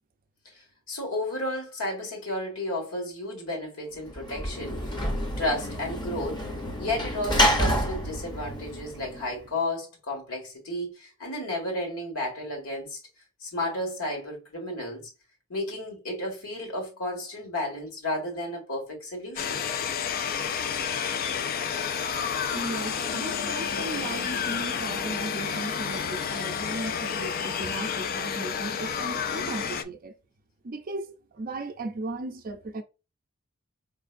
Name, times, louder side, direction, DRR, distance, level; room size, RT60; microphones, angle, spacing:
voice 1, 0.9-5.1 5.4-6.5 6.8-13.0 13.4-15.1 15.5-19.7, left 1 dB, 75° left, 1.9 m, -32 dB
Sliding door / Slam, 4.1-9.5, equal, 20° left, 0.8 m, -28 dB
sound 1, 19.4-29.8, left 7 dB, 40° left, 0.3 m, -30 dB
voice 2, 22.5-30.1 30.6-32.8, right 2 dB, 40° right, 0.5 m, -36 dB
4.5 x 3.2 x 2.5 m
head